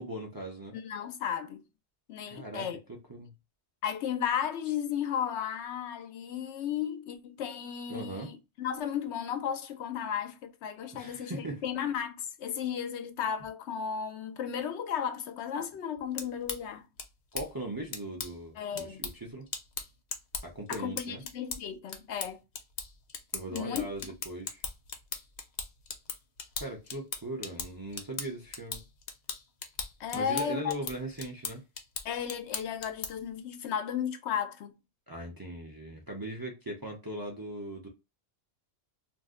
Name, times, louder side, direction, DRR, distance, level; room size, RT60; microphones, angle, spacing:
voice 1, 0.0-0.8 2.3-2.6 3.1-3.3 7.9-8.3 10.9-11.6 17.3-19.5 20.4-21.2 23.3-24.6 26.6-28.8 30.1-31.6 35.1-37.9, right 1 dB, 25° right, 0.5 m, -39 dB
voice 2, 0.7-1.6 2.1-2.8 3.8-16.9 18.6-19.1 20.7-22.4 23.5-23.9 30.0-30.7 32.0-34.8, left 8 dB, 75° left, 0.9 m, -34 dB
sound 1, 16.0-33.3, left 5 dB, 50° left, 0.6 m, -41 dB
2.6 x 2.1 x 3.5 m
omnidirectional pair, 1.2 m